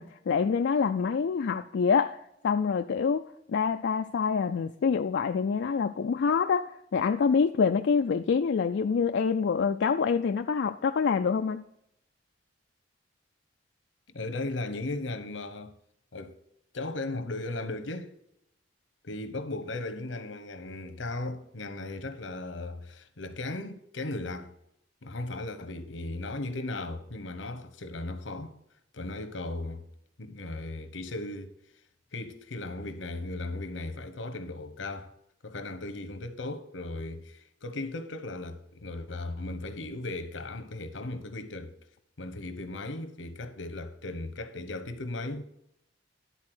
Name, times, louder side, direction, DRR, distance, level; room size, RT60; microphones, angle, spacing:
voice 1, 0.0-11.6, left 6 dB, 65° left, 0.4 m, -26 dB
voice 2, 14.1-15.7 16.1-16.4 16.7-18.1 19.0-24.5 25.0-28.5 28.9-29.8 30.2-31.5 32.1-35.1 35.4-41.7 42.2-45.4, left 2 dB, 90° left, 1.0 m, -36 dB
11.0 x 4.1 x 6.1 m
head